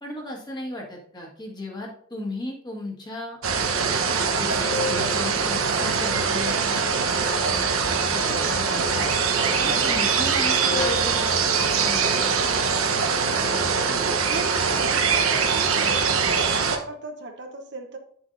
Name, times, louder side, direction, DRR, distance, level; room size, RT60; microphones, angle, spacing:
voice 1, 0.0-3.4 4.1-7.5 7.8-12.1, left 1 dB, 20° left, -2 dB, 1.7 m, -36 dB
sound 1, 3.4-16.8, right 5 dB, 80° right, 1.1 m, -23 dB
sound 2, 4.4-6.7 7.4-8.4 10.4-12.5 13.4-14.3 14.9-15.0 16.4-16.5, left 2 dB, 65° left, 2.0 m, -36 dB
voice 2, 14.3-18.0, right 2 dB, 55° right, 4 dB, 1.1 m, -37 dB
9.5 x 7.1 x 2.7 m, 0.64 s
head